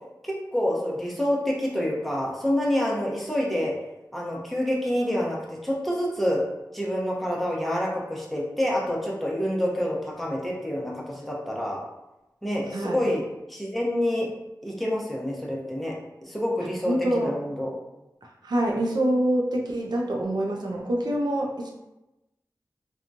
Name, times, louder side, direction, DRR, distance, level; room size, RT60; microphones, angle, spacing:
voice 1, 0.2-3.7 4.1-5.4 5.6-6.4 6.7-11.8 12.4-13.2 13.5-14.3 14.6-15.9 16.2-17.7, left 1 dB, ahead, -4 dB, 0.7 m, -27 dB
voice 2, 16.9-17.4 18.2-21.7, right 1 dB, 75° right, -1 dB, 0.5 m, -26 dB
2.9 x 2.3 x 2.6 m, 0.98 s
wide cardioid pair, 50°, 7 cm